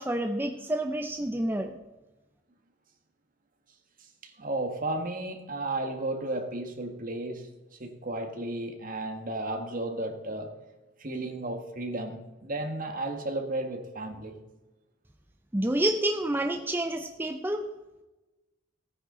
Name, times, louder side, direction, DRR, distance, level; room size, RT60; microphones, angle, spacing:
voice 1, 0.0-1.7 15.5-17.6, right 1 dB, 10° right, 4 dB, 0.6 m, -28 dB
voice 2, 4.2-7.5 7.8-10.5 11.0-14.3, right 2 dB, 50° right, 4 dB, 1.7 m, -33 dB
16.5 x 9.7 x 3.9 m, 1.1 s
head